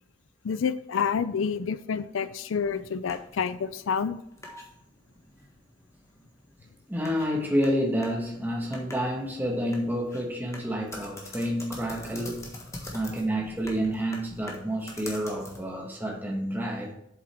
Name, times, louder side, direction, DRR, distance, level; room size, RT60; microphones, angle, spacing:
voice 1, 0.4-4.2 12.8-12.9, left 6 dB, 90° left, 14 dB, 0.4 m, -28 dB
sound 1, 2.6-15.8, left 1 dB, 15° left, 1.4 m, -46 dB
voice 2, 6.9-12.5 12.9-16.9, equal, 10° right, 0 dB, 1.2 m, -29 dB
7.9 x 7.2 x 3.4 m, 0.75 s
head